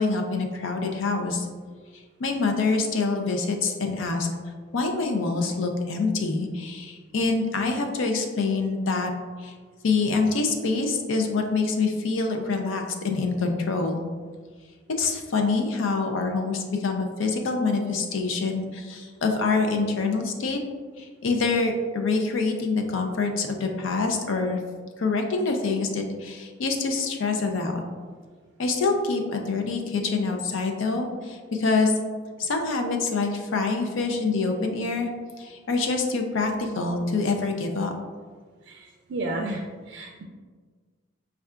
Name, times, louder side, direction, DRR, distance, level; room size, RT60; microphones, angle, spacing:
voice 1, 0.0-1.5 2.2-4.3 4.7-9.1 9.4-9.5 9.8-14.0 15.0-20.6 21.0-24.6 25.0-27.8 28.6-31.9 32.4-35.1 35.4-37.9, left 3 dB, 90° left, 4 dB, 0.5 m, -26 dB
voice 2, 38.7-39.6 39.9-40.2, right 2 dB, 65° right, 1 dB, 0.3 m, -32 dB
5.4 x 2.3 x 2.4 m, 1.5 s
head